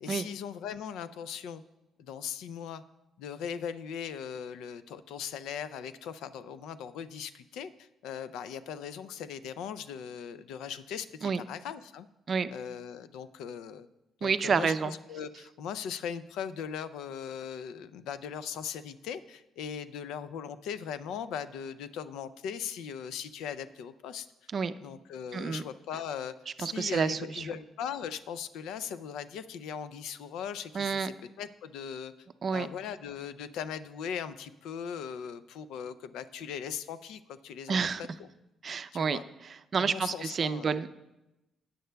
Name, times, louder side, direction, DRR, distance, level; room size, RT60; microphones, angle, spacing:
voice 1, 0.0-1.6 2.0-2.8 3.2-12.1 12.5-13.9 14.2-24.3 24.8-32.1 32.5-37.9 38.2-38.3 38.9-39.2 39.8-40.8, left 8 dB, 90° left, 14 dB, 0.4 m, -39 dB
voice 2, 14.2-14.9 24.5-24.7 25.3-25.6 26.6-27.5 30.7-31.1 32.4-32.7 37.7-38.0 38.6-40.9, right 5 dB, 45° right, 12 dB, 0.4 m, -29 dB
16.0 x 9.2 x 2.3 m, 0.97 s
cardioid pair, 90°, 0 cm